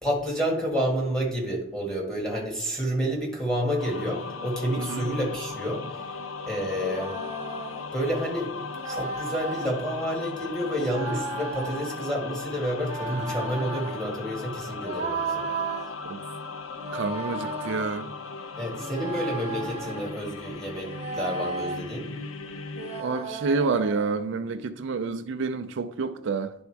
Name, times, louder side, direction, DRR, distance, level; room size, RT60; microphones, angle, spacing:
voice 1, 0.0-6.2 6.5-7.2 7.9-8.6 8.8-15.5 18.6-22.1, equal, 5° left, 1.7 m, -29 dB
sound 1, 3.8-23.0, left 4 dB, 90° left, 0.5 m, -37 dB
sound 2, 6.8-7.8 8.8-9.7 10.8-12.0 12.8-14.0 14.8-15.9 16.8-17.9 18.8-20.1 20.8-21.8 22.8-24.2, right 3 dB, 30° right, 0.7 m, -34 dB
voice 2, 16.9-18.1 23.0-26.5, right 4 dB, 65° right, 0.4 m, -28 dB
10.5 x 3.5 x 4.6 m
head